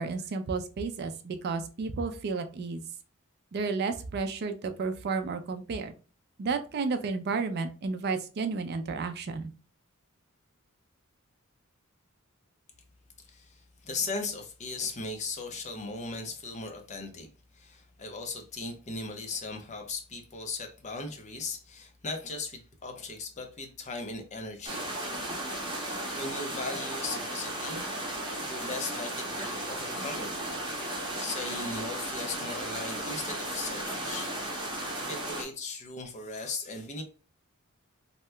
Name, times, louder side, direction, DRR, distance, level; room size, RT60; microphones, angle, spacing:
voice 1, 0.0-2.8 3.5-5.9 6.4-9.5, right 4 dB, 50° right, 0.4 m, -32 dB
voice 2, 13.2-17.3 17.5-24.9 25.7-27.9 28.5-30.3 31.2-34.3 34.8-37.0, left 3 dB, 35° left, 0.6 m, -38 dB
sound 1, 24.7-35.4, right 1 dB, 20° right, 0.7 m, -35 dB
2.8 x 2.2 x 3.2 m
head